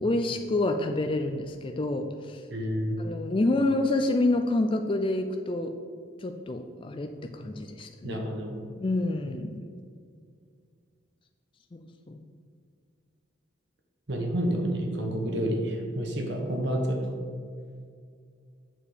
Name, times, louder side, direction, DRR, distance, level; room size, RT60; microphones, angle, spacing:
voice 1, 0.0-2.4 3.0-5.8 6.2-8.2 8.8-9.6 11.7-12.2, left 2 dB, 25° left, 5 dB, 0.4 m, -28 dB
voice 2, 2.5-3.0 8.0-8.6 14.1-17.1, equal, 60° right, 2 dB, 1.2 m, -29 dB
7.5 x 6.7 x 5.0 m, 2.2 s
head